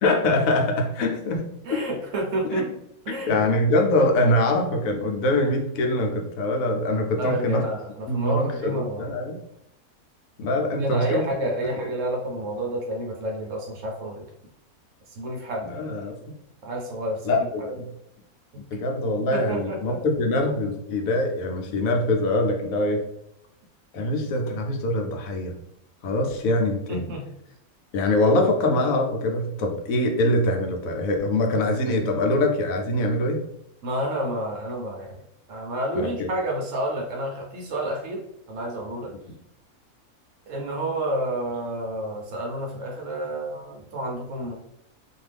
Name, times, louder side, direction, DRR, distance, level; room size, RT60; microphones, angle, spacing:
voice 1, 0.0-1.8 2.5-2.7 3.1-7.6 8.1-9.4 10.4-11.3 15.6-16.2 17.2-17.9 18.7-19.9 20.2-23.0 23.9-25.5 26.0-27.1 27.9-33.4 35.9-36.3, left 1 dB, 75° left, 2 dB, 1.0 m, -23 dB
voice 2, 1.7-2.7 3.1-3.4 7.2-9.1 10.7-14.2 15.1-15.7 16.6-17.7 18.5-18.6 19.3-20.0 26.9-27.2 33.8-35.2 35.5-38.2 38.5-39.1 40.5-44.5, right 1 dB, 65° right, 0 dB, 0.9 m, -29 dB
2.6 x 2.4 x 3.3 m, 0.79 s
omnidirectional pair, 1.6 m